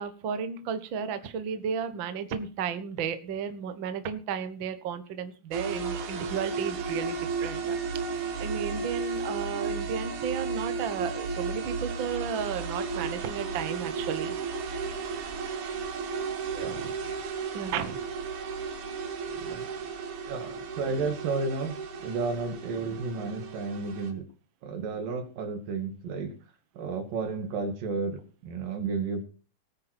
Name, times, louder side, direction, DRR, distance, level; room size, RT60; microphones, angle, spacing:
voice 1, 0.0-7.8 8.4-14.4 16.6-16.9 17.5-18.0 19.3-19.7 20.4-20.5, right 7 dB, 50° right, 10 dB, 1.5 m, -34 dB
sound 1, 5.5-24.1, right 5 dB, 65° right, 3.3 m, -34 dB
voice 2, 20.3-21.8 22.0-24.3 24.6-26.3 26.8-29.2, right 4 dB, 85° right, 7 dB, 3.8 m, -32 dB
19.0 x 9.7 x 4.4 m, 0.36 s
omnidirectional pair, 3.8 m